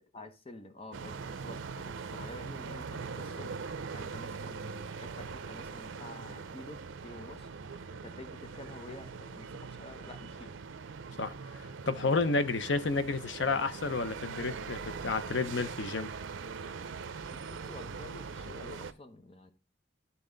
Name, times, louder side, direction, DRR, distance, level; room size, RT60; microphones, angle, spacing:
voice 1, 0.1-3.6 3.9-7.5 7.9-10.5 17.3-19.5, left 1 dB, 30° left, 1.0 m, -49 dB
sound 1, 0.9-18.9, right 5 dB, 90° right, 0.6 m, -42 dB
voice 2, 11.2-16.1, left 3 dB, 70° left, 0.7 m, -31 dB
12.0 x 4.2 x 3.9 m
head